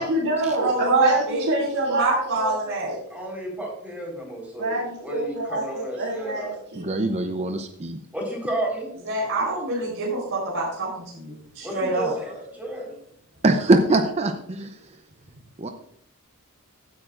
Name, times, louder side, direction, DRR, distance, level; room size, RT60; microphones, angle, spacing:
voice 1, 0.0-3.0 4.6-6.9, right 1 dB, 85° right, -6 dB, 2.9 m, -27 dB
voice 2, 0.6-1.4 1.9-3.0 9.1-10.9 11.1-12.1, right 2 dB, 60° right, -3 dB, 4.1 m, -25 dB
voice 3, 3.1-6.5 8.1-8.9 11.6-12.9, right 1 dB, 5° right, -1 dB, 4.2 m, -32 dB
voice 4, 6.8-8.0 13.4-14.8 15.6-15.7, right 2 dB, 30° right, 6 dB, 0.6 m, -22 dB
15.0 x 8.9 x 2.5 m, 0.70 s
head